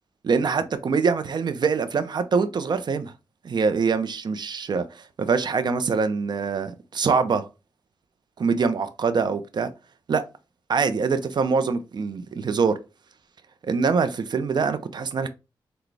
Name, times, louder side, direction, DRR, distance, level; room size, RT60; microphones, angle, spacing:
voice 1, 0.2-3.1 3.4-7.5 8.4-9.7 10.1-10.2 10.7-12.8 13.6-15.3, right 5 dB, 60° right, 0.6 m, -24 dB
6.0 x 2.3 x 3.3 m
cardioid pair, 75°, 8 cm